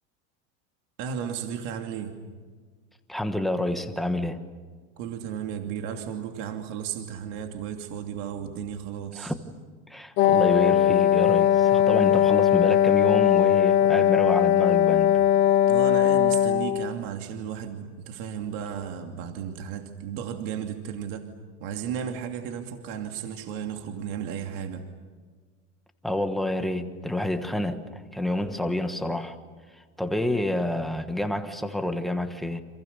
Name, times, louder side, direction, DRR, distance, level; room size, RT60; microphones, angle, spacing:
voice 1, 1.0-2.1 5.0-9.3 15.7-21.3 21.6-24.8, right 8 dB, 45° right, 5 dB, 2.7 m, -34 dB
voice 2, 3.1-4.4 9.2-9.4 9.9-15.2 26.0-29.4 29.7-32.6, left 1 dB, ahead, 7 dB, 1.2 m, -28 dB
Wind instrument woodwind instrument, 10.2-16.9, left 10 dB, 30° left, 0.7 m, -20 dB
30.0 x 28.0 x 6.8 m, 1.5 s
supercardioid pair, 175°, 39 cm